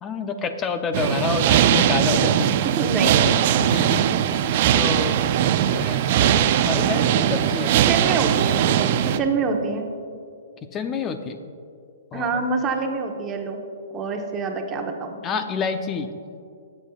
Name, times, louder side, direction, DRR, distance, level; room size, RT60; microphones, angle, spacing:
voice 1, 0.0-2.5 3.2-3.3 3.6-4.0 4.3-4.5 4.7-5.3 5.6-7.7 8.0-8.1 10.7-11.4 12.1-12.4 15.2-16.1, left 5 dB, 20° left, 8 dB, 0.7 m, -28 dB
sound 1, 0.9-9.2, right 10 dB, 45° right, 0.5 m, -20 dB
voice 2, 2.8-3.3 7.7-8.8 9.0-9.9 12.1-13.6 13.9-15.2, right 4 dB, 20° right, 3 dB, 1.2 m, -26 dB
19.5 x 8.5 x 2.4 m, 2.3 s
hypercardioid pair, 145°, 0 cm